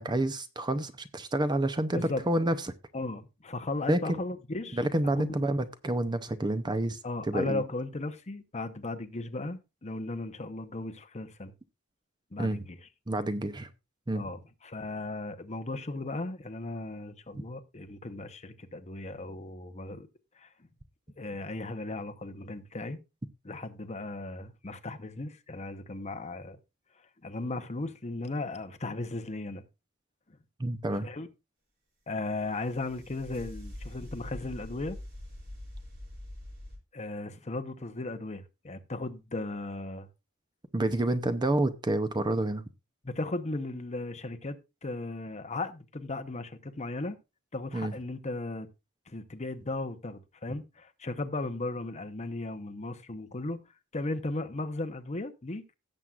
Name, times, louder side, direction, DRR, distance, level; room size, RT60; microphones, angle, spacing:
voice 1, 0.0-2.6 3.9-4.2 4.7-7.0 7.3-7.6 12.4-12.6 13.1-13.7 14.1-14.3 30.6-31.1 40.7-42.6 47.7-47.9, right 1 dB, 20° right, 0.6 m, -28 dB
voice 2, 2.9-4.8 5.2-5.5 7.0-11.5 12.3-12.8 14.1-20.1 20.4-20.5 21.2-23.0 23.4-26.6 27.2-29.6 30.9-31.3 32.1-35.0 36.9-40.1 43.0-47.2 47.5-48.7 49.1-53.6 53.9-55.6, left 2 dB, 30° left, 0.9 m, -36 dB
sound 1, 32.2-36.8, left 1 dB, 45° right, 5.7 m, -44 dB
17.0 x 7.5 x 2.4 m
head